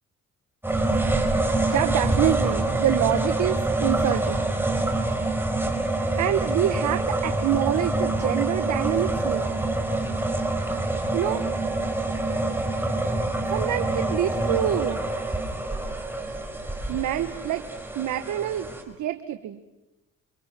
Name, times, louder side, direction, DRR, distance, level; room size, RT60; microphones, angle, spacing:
sound 1, 0.6-18.8, right 2 dB, 5° right, 4.7 m, -26 dB
voice 1, 1.7-4.5 5.9-9.6 11.1-11.5 13.5-15.0 16.9-17.7 17.9-19.6, right 12 dB, 75° right, 9 dB, 1.3 m, -26 dB
28.5 x 25.0 x 6.0 m, 1.0 s
cardioid pair, 90°, 30 cm